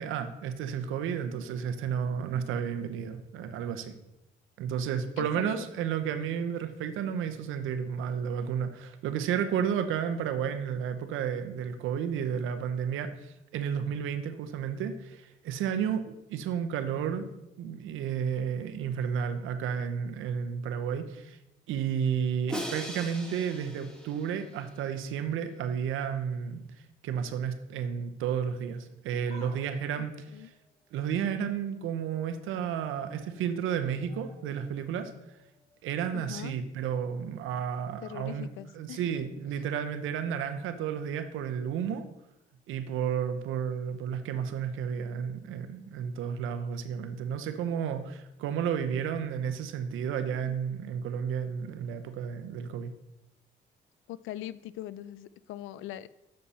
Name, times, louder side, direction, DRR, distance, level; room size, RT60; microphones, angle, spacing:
voice 1, 0.0-4.0 4.6-17.3 17.6-21.4 21.7-26.6 27.0-30.1 30.9-35.1 35.8-38.5 38.7-42.1 42.7-52.9, right 8 dB, 90° right, 8 dB, 0.8 m, -32 dB
Crash cymbal, 22.5-24.7, equal, 5° left, 1.5 m, -39 dB
sound 1, 29.3-31.9 32.3-32.7 33.0-37.0 37.3-37.4 38.4-38.5, left 1 dB, 35° left, 1.8 m, -58 dB
voice 2, 36.1-36.5 38.0-39.1 50.4-50.6 54.1-56.1, left 13 dB, 85° left, 17 dB, 0.4 m, -41 dB
7.2 x 6.5 x 4.2 m, 0.88 s
cardioid pair, 90°, 20 cm